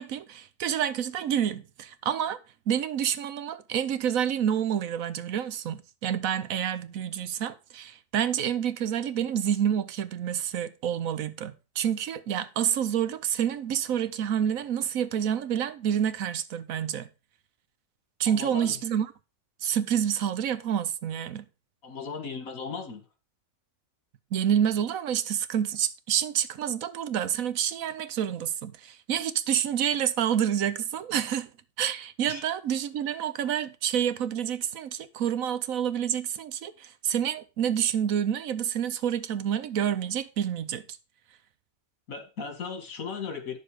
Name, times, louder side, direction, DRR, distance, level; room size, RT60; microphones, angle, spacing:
voice 1, 0.0-2.4 2.7-17.1 18.2-19.1 19.6-21.4 24.3-31.5 31.8-40.8, right 9 dB, 75° right, 1.2 m, -28 dB
voice 2, 18.3-18.8 21.8-23.0 32.3-32.5 42.1-43.6, left 5 dB, 75° left, 2.1 m, -37 dB
9.7 x 6.8 x 4.8 m
omnidirectional pair, 1.5 m